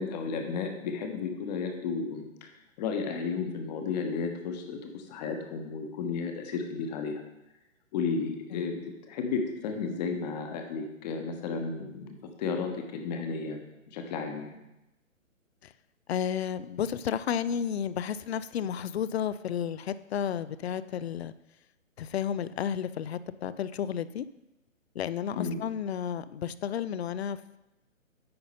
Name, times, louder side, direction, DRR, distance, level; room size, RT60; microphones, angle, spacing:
voice 1, 0.0-2.5 2.8-7.2 7.9-8.8 9.1-13.6 13.9-14.6 25.4-25.6, left 5 dB, 30° left, 4 dB, 1.2 m, -33 dB
voice 2, 16.1-21.3 22.0-24.3 25.0-27.4, left 8 dB, 55° left, 15 dB, 0.5 m, -32 dB
9.5 x 4.1 x 5.5 m, 0.95 s
hypercardioid pair, 140°, 40 cm